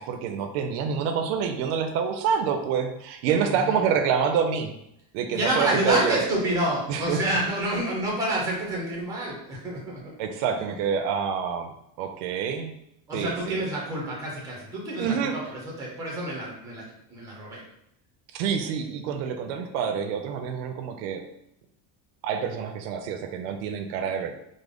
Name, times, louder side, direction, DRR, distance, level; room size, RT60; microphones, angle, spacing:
voice 1, 0.0-4.7 5.1-6.2 6.9-7.2 10.2-11.7 12.0-12.7 13.1-13.6 15.0-15.4 18.3-21.2 22.2-24.3, right 7 dB, 80° right, 6 dB, 0.6 m, -27 dB
voice 2, 3.4-3.9 5.3-10.0 13.1-17.6, right 1 dB, 10° right, -3 dB, 0.5 m, -28 dB
3.6 x 2.0 x 3.4 m, 0.78 s
cardioid pair, 175°, 42 cm